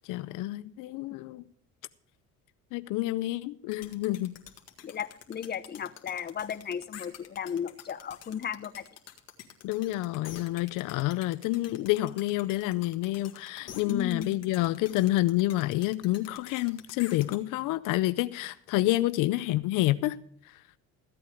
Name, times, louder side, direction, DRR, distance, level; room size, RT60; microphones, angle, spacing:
voice 1, 0.1-1.4 2.7-4.4 9.6-20.2, left 17 dB, 80° left, 0.6 m, -28 dB
sound 1, 3.7-17.4, left 9 dB, 55° left, 1.9 m, -47 dB
voice 2, 4.8-8.8 13.8-14.4, left 8 dB, 30° left, 0.8 m, -35 dB
15.0 x 8.6 x 5.0 m
cardioid pair, 95°, 31 cm